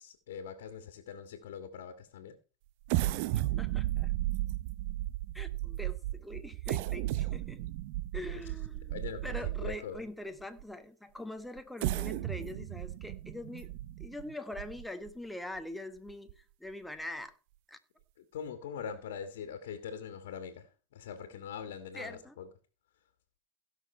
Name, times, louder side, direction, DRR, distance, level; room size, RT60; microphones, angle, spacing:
voice 1, 0.0-2.4 8.9-10.0 18.2-22.5, left 7 dB, 80° left, 1.7 m, -43 dB
sound 1, 2.9-10.0 10.6-10.7 11.6-15.1 15.6-15.7 16.1-16.3, right 16 dB, 65° right, 0.6 m, -34 dB
voice 2, 3.6-4.1 5.3-7.6 8.1-8.9 9.2-13.7 14.0-17.3 17.7-17.8 21.9-22.3, left 1 dB, 5° left, 1.3 m, -43 dB
16.5 x 6.3 x 4.4 m
supercardioid pair, 115°, 0 cm